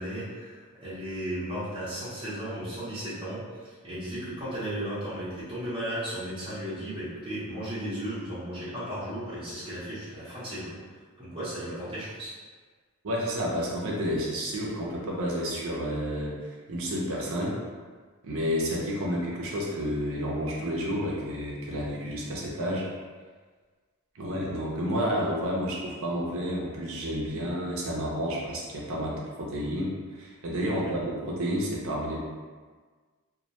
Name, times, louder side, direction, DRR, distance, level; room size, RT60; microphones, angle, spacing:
voice 1, 0.0-10.8 11.2-12.3 30.8-30.9, right 1 dB, 25° right, -12 dB, 0.7 m, -35 dB
voice 2, 13.0-17.6 18.2-22.9 24.1-32.2, equal, 60° right, -3 dB, 0.5 m, -30 dB
2.2 x 2.1 x 2.8 m, 1.5 s
head